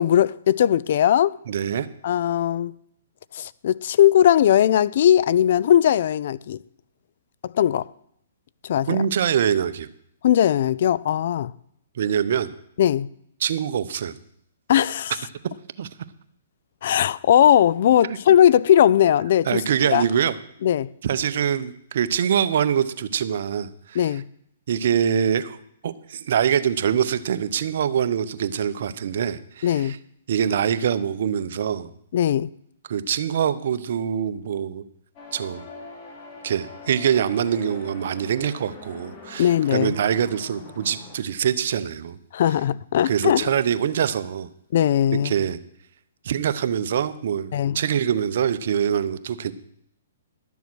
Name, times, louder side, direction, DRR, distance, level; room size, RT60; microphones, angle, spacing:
voice 1, 0.0-1.3 2.0-2.7 3.3-6.6 7.4-7.9 8.6-9.0 10.2-11.5 12.8-13.1 14.7-15.1 16.8-19.6 19.9-20.0 20.6-20.9 23.9-24.2 29.6-30.0 32.1-32.5 39.4-39.9 42.3-43.5 44.7-45.3 47.5-47.8, left 10 dB, 60° left, 0.3 m, -19 dB
voice 2, 1.5-1.9 8.9-9.9 12.0-12.5 13.4-14.1 15.8-15.9 18.1-18.2 19.5-20.4 21.0-24.0 24.7-25.6 25.8-30.0 30.3-31.9 32.9-34.8 35.3-35.7 36.4-42.2 43.1-44.5 45.2-45.6 46.2-49.5, right 8 dB, 60° right, 0.7 m, -24 dB
sound 1, 35.2-41.2, left 3 dB, 35° left, 2.2 m, -42 dB
11.5 x 7.1 x 6.1 m
hypercardioid pair, 140°, 0 cm